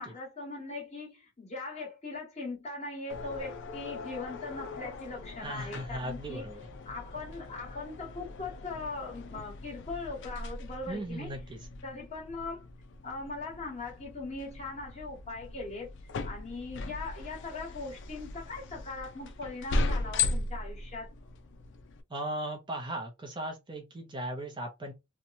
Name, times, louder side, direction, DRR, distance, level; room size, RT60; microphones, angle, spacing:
voice 1, 0.0-6.4 6.8-11.3 11.8-12.6 13.0-15.9 16.2-21.1, left 3 dB, 30° left, 1.4 m, -40 dB
sound 1, 3.1-22.0, left 3 dB, 60° left, 0.4 m, -38 dB
voice 2, 5.4-6.6 10.9-11.6 22.1-24.9, right 1 dB, 25° right, 0.5 m, -37 dB
2.8 x 2.1 x 2.6 m
head